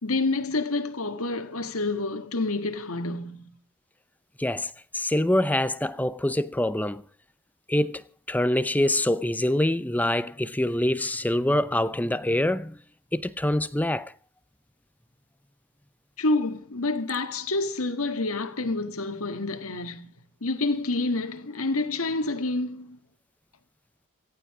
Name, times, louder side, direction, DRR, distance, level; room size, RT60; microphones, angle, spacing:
voice 1, 0.0-3.6 16.2-20.1 20.4-23.0, left 2 dB, 70° left, 1.9 m, -28 dB
voice 2, 4.4-7.0 7.7-12.8 13.1-14.1, left 1 dB, 5° left, 0.7 m, -25 dB
17.5 x 15.0 x 4.9 m
head